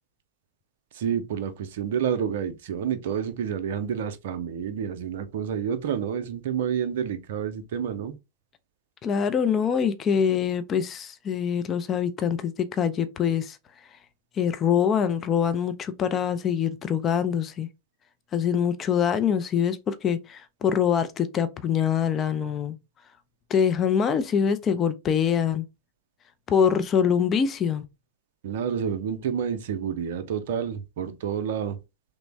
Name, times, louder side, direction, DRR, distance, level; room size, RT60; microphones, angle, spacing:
voice 1, 0.9-8.1 28.4-31.8, right 8 dB, 55° right, 0.4 m, -29 dB
voice 2, 9.0-13.6 14.4-17.7 18.3-22.8 23.5-25.6 26.5-27.8, left 7 dB, 25° left, 0.4 m, -24 dB
3.2 x 2.0 x 3.1 m
figure-of-eight pair, 90°, 0 cm